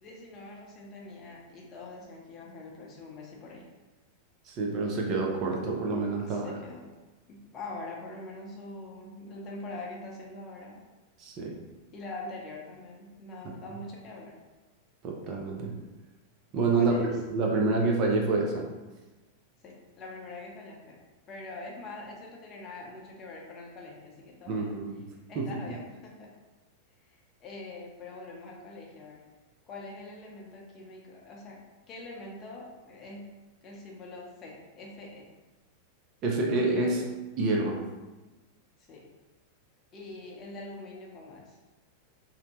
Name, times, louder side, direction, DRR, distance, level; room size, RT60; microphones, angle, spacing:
voice 1, 0.0-3.7 6.2-6.9 7.3-10.8 11.9-14.4 16.7-17.2 19.6-21.0 21.3-24.8 25.3-26.3 27.0-29.2 29.7-31.6 31.9-33.3 33.6-35.3 36.7-37.1 38.8-39.1 39.9-41.6, left 2 dB, 30° left, -2 dB, 0.6 m, -44 dB
voice 2, 4.5-6.6 11.2-11.6 15.0-15.7 16.5-18.6 24.5-25.0 25.4-25.6 36.2-37.0 37.4-37.9, right 3 dB, 40° right, 0 dB, 0.5 m, -27 dB
2.6 x 2.1 x 3.0 m, 1.2 s
figure-of-eight pair, 90°, 0 cm